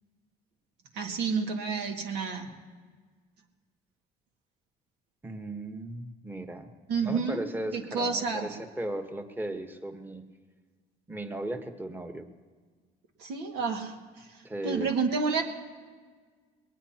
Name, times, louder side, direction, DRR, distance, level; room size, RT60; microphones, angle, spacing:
voice 1, 0.9-2.5 6.9-7.4 7.7-8.5 13.2-13.9 14.6-15.4, right 5 dB, 90° right, 2 dB, 2.0 m, -29 dB
voice 2, 5.2-6.7 7.0-10.2 11.1-12.3 14.4-14.9, right 1 dB, 10° right, 6 dB, 1.2 m, -36 dB
21.5 x 19.0 x 2.9 m, 1.5 s
cardioid pair, 110°, 17 cm